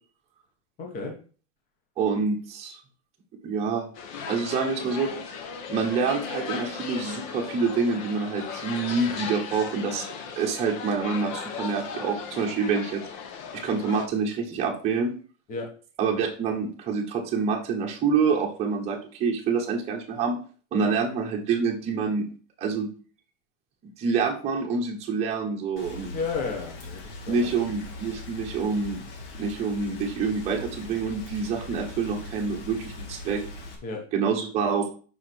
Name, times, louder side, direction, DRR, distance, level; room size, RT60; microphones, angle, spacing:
voice 1, 0.8-1.2 15.5-15.7 20.7-20.9 26.1-27.5 33.8-34.0, left 4 dB, 25° left, 1 dB, 1.3 m, -32 dB
voice 2, 2.0-2.8 3.4-3.9 4.3-5.1 5.7-10.1 10.4-13.0 13.5-15.1 16.0-20.4 20.7-22.3 22.6-22.9 24.0-26.1 27.3-29.0 29.4-33.4 34.1-34.9, right 5 dB, 15° right, -1 dB, 1.1 m, -27 dB
sound 1, 3.9-14.1, left 6 dB, 40° left, 1.0 m, -36 dB
Rain, 25.8-33.8, left 3 dB, 65° left, 2.3 m, -41 dB
5.6 x 4.9 x 6.2 m, 0.40 s
supercardioid pair, 175°, 36 cm